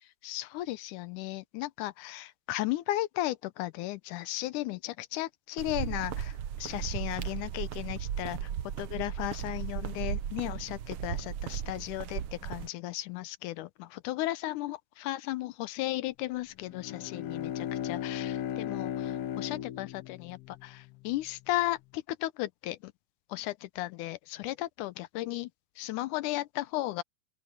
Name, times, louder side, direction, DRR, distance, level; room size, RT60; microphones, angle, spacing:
voice 1, 0.2-8.5 8.8-22.9 23.3-25.5 25.8-27.0, left 16 dB, 85° left, 2.2 m, -35 dB
sound 1, 5.6-12.7, right 9 dB, 70° right, 1.2 m, -36 dB
Bowed string instrument, 16.6-21.2, left 10 dB, 70° left, 1.5 m, -36 dB
open air
omnidirectional pair, 3.6 m